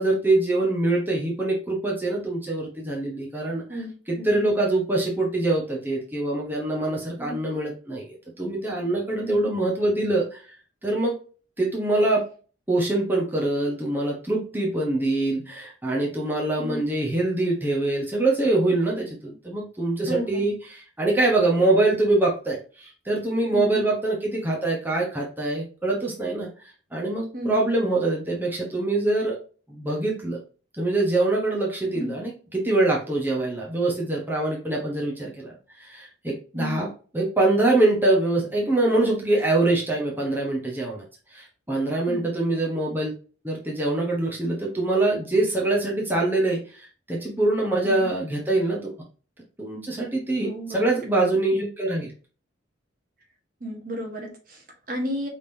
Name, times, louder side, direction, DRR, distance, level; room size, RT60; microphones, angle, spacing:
voice 1, 0.0-3.8 4.1-10.6 10.8-11.1 11.6-12.3 12.7-26.5 26.9-29.4 29.7-30.4 30.8-41.0 41.3-43.1 43.4-48.9 49.6-52.1, right 2 dB, 10° right, -3 dB, 1.0 m, -24 dB
voice 2, 3.7-4.5 7.2-7.4 9.2-9.5 16.6-16.8 20.1-20.4 23.5-23.8 27.3-27.6 31.9-32.1 36.5-36.8 42.1-42.3 47.8-48.1 50.4-51.0 53.6-55.3, equal, 45° right, 2 dB, 1.2 m, -33 dB
5.1 x 3.6 x 2.6 m, 0.38 s
head